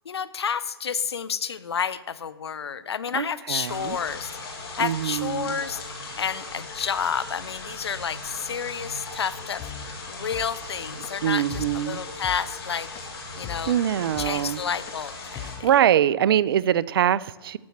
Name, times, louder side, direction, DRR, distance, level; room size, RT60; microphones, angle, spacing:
voice 1, 0.1-4.3 4.8-5.8 6.2-9.7 10.1-12.9 13.4-13.8 14.2-15.5, left 7 dB, 90° left, 0.6 m, -30 dB
voice 2, 3.1-4.0 4.8-5.6 11.2-12.0 13.7-14.6 15.4-17.6, right 10 dB, 65° right, 0.4 m, -23 dB
sound 1, 3.7-15.6, left 3 dB, 70° left, 3.1 m, -38 dB
sound 2, 9.6-15.8, left 10 dB, 25° left, 0.5 m, -40 dB
12.5 x 4.2 x 7.2 m
hypercardioid pair, 135°, 13 cm